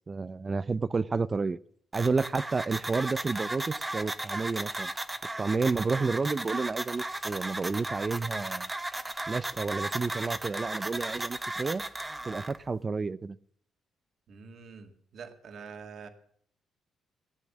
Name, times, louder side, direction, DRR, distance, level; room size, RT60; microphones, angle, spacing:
voice 1, 0.1-1.6 1.9-4.9 5.4-8.7 9.3-11.9 12.2-13.4, right 4 dB, 30° right, 19 dB, 0.5 m, -30 dB
sound 1, 1.9-12.6, right 2 dB, 15° right, 1.0 m, -35 dB
voice 2, 14.3-16.1, right 5 dB, 65° right, 5 dB, 2.0 m, -46 dB
17.5 x 8.4 x 7.2 m, 0.63 s
cardioid pair, 90°, 0 cm